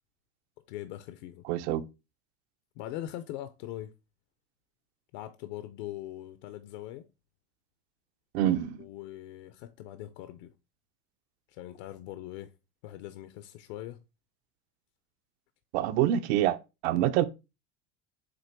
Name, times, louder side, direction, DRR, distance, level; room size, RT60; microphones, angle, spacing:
voice 1, 0.7-1.4 2.8-3.9 5.1-7.1 8.8-10.5 11.5-12.5 12.8-14.0, left 13 dB, 75° left, 0.8 m, -41 dB
voice 2, 1.4-1.8 8.3-8.9 15.7-16.6 16.8-17.2, right 12 dB, 75° right, 0.8 m, -26 dB
7.9 x 3.0 x 4.6 m
cardioid pair, 170°, 33 cm